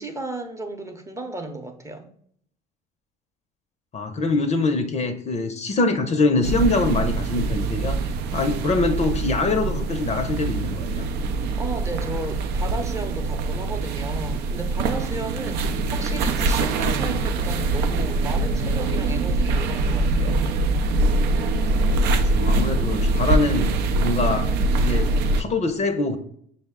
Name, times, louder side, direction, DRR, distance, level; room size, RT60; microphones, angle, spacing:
voice 1, 0.0-2.1 11.6-20.4, right 2 dB, 15° right, 4 dB, 0.7 m, -34 dB
voice 2, 3.9-11.1 22.1-23.7 24.0-26.2, left 3 dB, 35° left, 8 dB, 0.6 m, -24 dB
sound 1, 6.4-25.4, right 2 dB, 65° right, 0.5 m, -23 dB
5.3 x 2.1 x 3.5 m, 0.63 s
hypercardioid pair, 70°, 19 cm